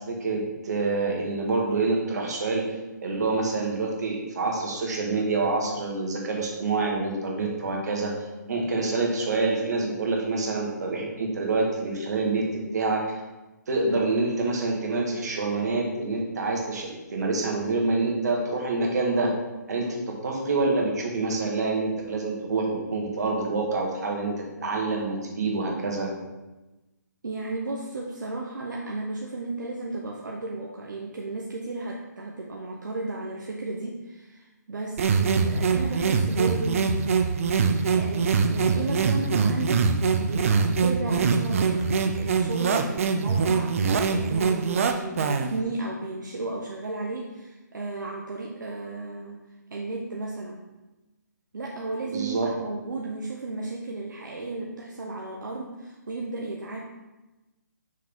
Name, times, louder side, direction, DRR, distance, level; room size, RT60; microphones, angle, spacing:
voice 1, 0.1-2.6 3.0-8.1 8.5-12.4 12.7-13.1 13.7-19.3 19.7-26.1 52.1-52.5, right 3 dB, 65° right, 0 dB, 1.7 m, -27 dB
voice 2, 27.2-39.9 40.2-49.4 49.7-50.6 51.5-56.8, right 2 dB, 80° right, -1 dB, 0.9 m, -34 dB
sound 1, 35.0-45.6, right 5 dB, 45° right, 0.5 m, -23 dB
6.1 x 4.8 x 3.6 m, 1.1 s
hypercardioid pair, 150°, 10 cm